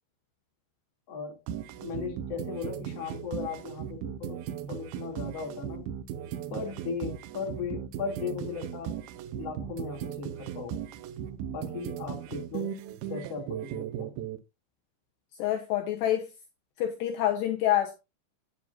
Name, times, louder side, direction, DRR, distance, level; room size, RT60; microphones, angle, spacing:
voice 1, 1.1-1.4 1.8-4.4 4.7-5.9 6.5-8.9 9.3-10.8 11.5-12.7 13.1-14.1, left 5 dB, 40° left, 3.3 m, -37 dB
sound 1, 1.5-14.4, right 9 dB, 85° right, 2.1 m, -37 dB
voice 2, 15.4-16.3 16.8-18.0, left 12 dB, 75° left, 3.0 m, -27 dB
9.7 x 9.4 x 2.6 m
omnidirectional pair, 5.4 m